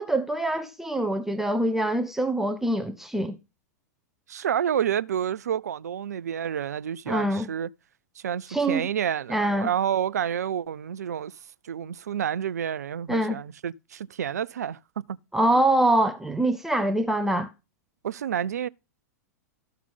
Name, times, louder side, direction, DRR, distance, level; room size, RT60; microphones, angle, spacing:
voice 1, 0.0-3.4 7.1-7.5 8.5-8.9 9.3-9.7 13.1-13.4 15.3-17.5, right 1 dB, 5° right, 0.7 m, -24 dB
voice 2, 4.3-7.7 8.2-11.4 11.6-14.8 15.1-15.2 15.5-15.6 18.0-18.7, right 9 dB, 65° right, 0.4 m, -29 dB
13.5 x 5.8 x 3.8 m
figure-of-eight pair, 95°, 9 cm